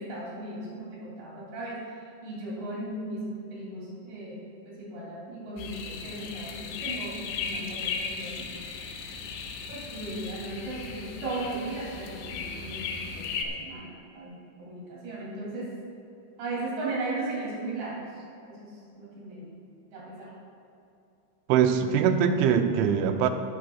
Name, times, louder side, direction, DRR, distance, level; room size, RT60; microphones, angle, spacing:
voice 1, 0.0-8.6 9.7-15.8 16.4-19.6 19.9-20.3, right 2 dB, 65° right, -6 dB, 4.7 m, -37 dB
sound 1, 5.6-13.4, left 5 dB, 80° left, 3.2 m, -36 dB
voice 2, 21.5-23.3, right 7 dB, 85° right, 7 dB, 3.1 m, -22 dB
18.5 x 12.0 x 2.3 m, 2.7 s
omnidirectional pair, 5.5 m